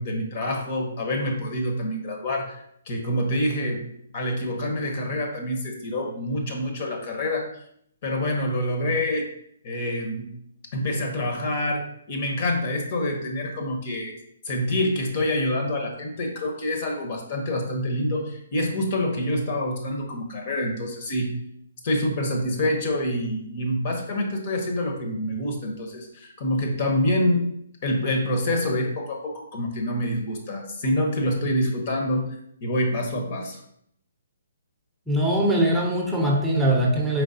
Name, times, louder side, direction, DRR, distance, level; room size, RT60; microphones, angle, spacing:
voice 1, 0.0-3.8 4.1-7.5 8.0-9.3 9.6-10.3 10.7-14.1 14.5-21.3 21.8-27.4 27.8-32.2 32.6-33.6, left 1 dB, 45° left, 3 dB, 0.8 m, -26 dB
voice 2, 35.1-37.2, right 1 dB, 5° right, -3 dB, 0.7 m, -21 dB
4.5 x 3.4 x 2.7 m, 0.70 s
hypercardioid pair, 145°, 0 cm